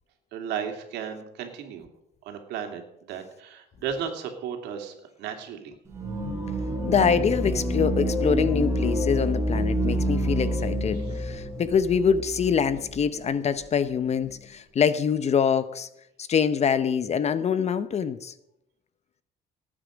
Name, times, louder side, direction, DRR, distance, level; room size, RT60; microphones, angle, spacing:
voice 1, 0.3-1.9 2.2-5.7 10.9-11.2, right 7 dB, 85° right, 4 dB, 2.7 m, -35 dB
sound 1, 5.9-13.1, equal, 15° right, 4.8 m, -27 dB
voice 2, 6.9-15.9 16.2-18.3, left 7 dB, 40° left, 14 dB, 0.8 m, -25 dB
19.0 x 8.8 x 5.1 m, 0.81 s
cardioid pair, 110°, 17 cm